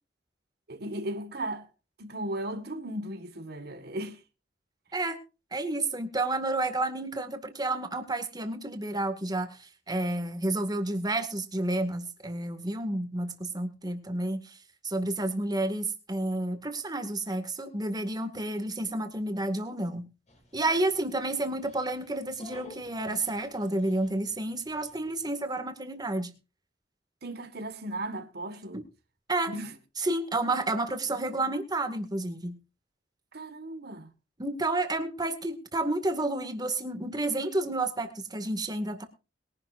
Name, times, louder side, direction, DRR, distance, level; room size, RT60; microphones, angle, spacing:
voice 1, 0.7-1.7 2.0-4.2 27.2-28.8 29.5-29.7 33.3-34.1, right 1 dB, 60° right, 1.7 m, -36 dB
voice 2, 5.5-14.6 14.8-20.1 20.5-26.3 29.3-29.5 30.0-32.6 34.4-39.0, right 2 dB, 25° right, 2.0 m, -30 dB
Dog, 20.3-25.3, left 1 dB, 40° left, 4.5 m, -54 dB
21.5 x 11.5 x 2.6 m
head